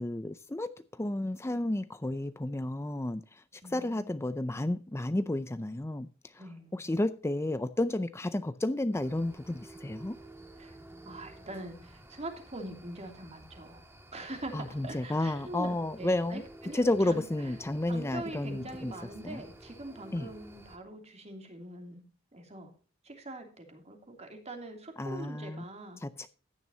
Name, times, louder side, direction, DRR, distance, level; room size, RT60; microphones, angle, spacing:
voice 1, 0.0-6.1 6.3-6.5 6.7-10.2 14.5-16.4 16.7-18.9 19.2-19.4 20.1-20.3 25.0-25.6 26.0-26.3, left 1 dB, 15° left, 0.5 m, -32 dB
voice 2, 3.6-4.2 6.4-6.9 10.6-10.7 11.0-13.8 14.1-17.5 17.9-22.0 22.3-22.7 23.0-26.0, right 1 dB, 35° right, 2.9 m, -43 dB
sound 1, 8.9-20.8, right 1 dB, 15° right, 2.0 m, -52 dB
15.0 x 10.5 x 2.8 m
head